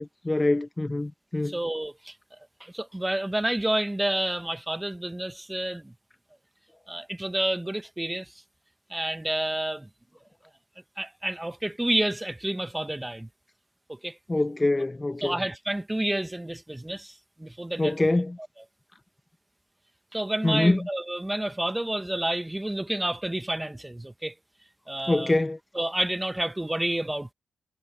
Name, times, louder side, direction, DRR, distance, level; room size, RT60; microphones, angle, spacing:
voice 1, 0.0-1.5 14.3-15.3 17.8-18.4 20.4-20.8 25.1-25.6, left 2 dB, 15° left, 0.6 m, -24 dB
voice 2, 1.4-2.1 2.6-5.9 6.9-8.3 8.9-9.9 11.0-13.3 13.9-14.2 15.2-17.9 20.1-24.3 24.9-25.4 25.7-27.3, right 1 dB, 10° right, 1.2 m, -29 dB
cardioid pair, 90°, 0 cm